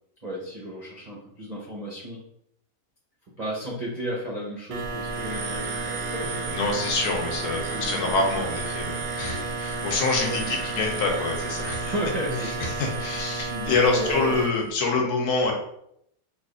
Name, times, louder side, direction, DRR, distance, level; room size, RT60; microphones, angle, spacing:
voice 1, 0.2-2.2 3.4-6.6 7.5-8.5 9.2-9.5 10.2-10.5 11.8-13.2 13.5-14.4 15.0-15.1, equal, 50° right, -5 dB, 0.5 m, -34 dB
sound 1, 4.7-14.5, right 4 dB, 70° right, 0.8 m, -31 dB
voice 2, 6.5-11.9 12.4-15.5, left 3 dB, 70° left, 1 dB, 1.3 m, -26 dB
3.1 x 2.4 x 3.6 m, 0.74 s
omnidirectional pair, 1.7 m